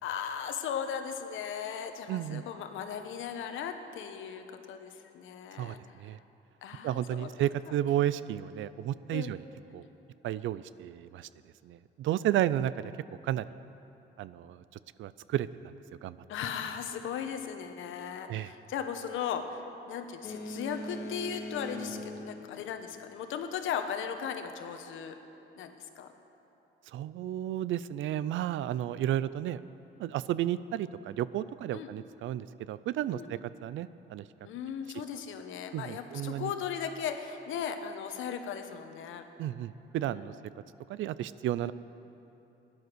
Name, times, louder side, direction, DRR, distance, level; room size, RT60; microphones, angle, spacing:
voice 1, 0.0-5.8 6.6-7.3 9.1-9.3 16.3-25.2 25.5-26.1 31.7-31.9 33.1-33.3 34.4-39.2 40.1-40.3 41.6-41.7, left 8 dB, 80° left, 7 dB, 1.1 m, -37 dB
voice 2, 2.1-2.4 5.6-6.2 6.8-9.4 9.7-9.8 10.2-11.3 11.6-13.5 14.2-14.6 15.0-15.5 16.0-16.2 18.3-18.5 26.9-29.6 30.0-34.3 35.7-36.5 39.4-40.3 40.9-41.7, right 12 dB, 75° right, 16 dB, 0.5 m, -32 dB
Boat Water vehicle, 20.2-23.4, left 1 dB, 55° left, 1.4 m, -41 dB
16.5 x 10.5 x 6.3 m, 3.0 s
cardioid pair, 90°, 20 cm